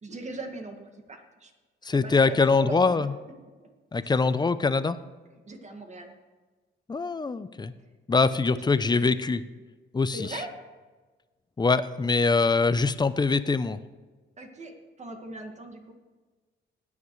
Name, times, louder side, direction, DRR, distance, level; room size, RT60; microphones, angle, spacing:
voice 1, 0.0-1.5 1.8-3.1 3.6-3.7 4.0-4.2 5.5-6.2 8.4-8.7 10.1-10.5 14.4-15.9, right 2 dB, 35° right, 4 dB, 2.0 m, -40 dB
voice 2, 1.8-3.1 3.9-5.0 6.9-7.7 8.1-9.4 9.9-10.4 11.6-13.8, left 4 dB, 20° left, 13 dB, 0.6 m, -23 dB
20.0 x 9.5 x 3.2 m, 1.3 s
cardioid pair, 90°, 20 cm